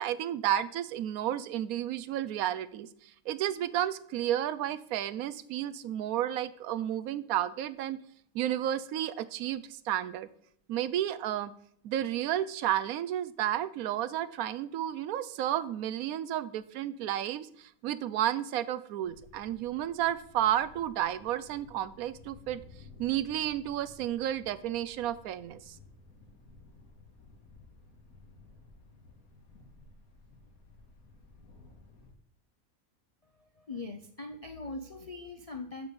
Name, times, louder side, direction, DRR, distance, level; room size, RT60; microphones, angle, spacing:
voice 1, 0.0-8.0 8.3-10.3 10.7-11.5 11.8-22.6 23.0-25.8, right 11 dB, 85° right, 15 dB, 1.1 m, -32 dB
Thunder, 19.0-32.1, left 3 dB, 90° left, 2.0 m, -56 dB
voice 2, 33.2-35.9, left 3 dB, 55° left, 6 dB, 0.4 m, -41 dB
8.0 x 5.3 x 6.8 m, 0.64 s
omnidirectional pair, 1.5 m